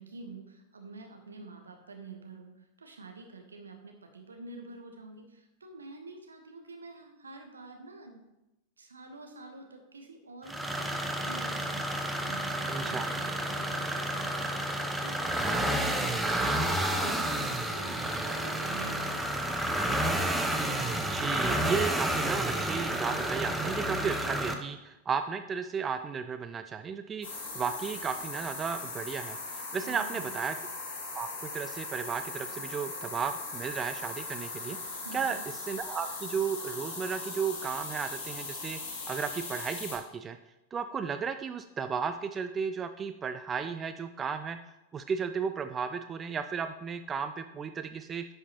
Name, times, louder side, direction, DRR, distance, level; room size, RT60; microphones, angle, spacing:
voice 1, 0.0-8.3 8.8-11.9 12.2-19.3 29.8-30.3 35.0-35.4, right 3 dB, 75° right, 4 dB, 1.1 m, -48 dB
sound 1, 10.5-24.5, right 1 dB, 5° right, 0.7 m, -30 dB
voice 2, 12.7-13.1 21.1-30.6 31.1-34.8 35.1-35.4 35.6-38.8 39.1-40.4 40.7-44.6 44.9-48.3, right 6 dB, 20° right, 9 dB, 0.3 m, -34 dB
sound 2, 27.2-40.0, left 3 dB, 50° left, 2.3 m, -39 dB
10.5 x 5.5 x 2.9 m, 0.95 s
figure-of-eight pair, 90°, 0 cm